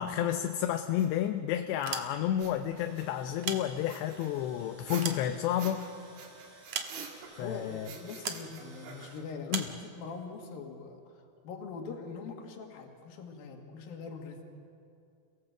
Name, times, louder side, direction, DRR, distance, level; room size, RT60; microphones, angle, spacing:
voice 1, 0.0-5.8 7.4-7.9 9.5-9.6, left 11 dB, 80° left, 7 dB, 2.8 m, -31 dB
sound 1, 1.0-1.1 2.3-3.3 3.9-5.9 6.2-7.5 7.9-9.3, right 7 dB, 90° right, 4.5 m, -47 dB
sound 2, 1.7-2.5 3.2-4.2 4.7-5.9 6.7-7.4 8.2-8.5 9.5-9.8, right 7 dB, 75° right, 1.6 m, -38 dB
Tools, 2.5-9.2, right 1 dB, 30° right, 4.9 m, -56 dB
voice 2, 7.4-14.4, left 5 dB, 60° left, 3 dB, 3.5 m, -43 dB
28.5 x 17.5 x 7.9 m, 2.5 s
omnidirectional pair, 5.3 m